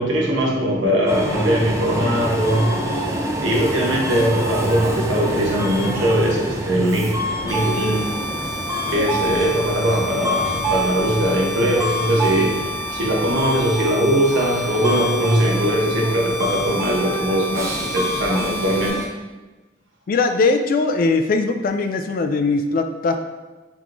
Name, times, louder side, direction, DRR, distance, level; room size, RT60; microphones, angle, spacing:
voice 1, 0.0-3.1 3.4-8.1 8.9-19.0, right 1 dB, 75° right, -2 dB, 1.0 m, -20 dB
Subway metro underground, 1.1-19.1, equal, 15° right, 0.4 m, -27 dB
sound 1, 7.5-18.9, equal, 20° left, 1.0 m, -31 dB
voice 2, 20.1-23.2, left 3 dB, 50° left, 7 dB, 0.3 m, -20 dB
3.5 x 3.0 x 3.7 m, 1.2 s
head